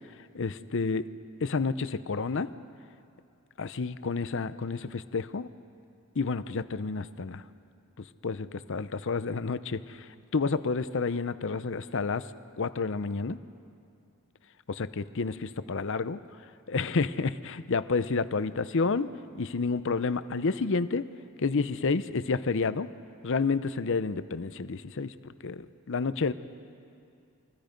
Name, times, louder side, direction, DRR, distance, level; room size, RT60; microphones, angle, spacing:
voice 1, 0.3-1.1 1.4-2.5 3.6-5.5 6.2-7.4 8.0-12.3 12.6-13.4 14.7-16.2 16.7-21.1 21.4-22.9 23.2-26.3, left 4 dB, 60° left, 13 dB, 0.7 m, -30 dB
29.0 x 23.5 x 5.2 m, 2.5 s
head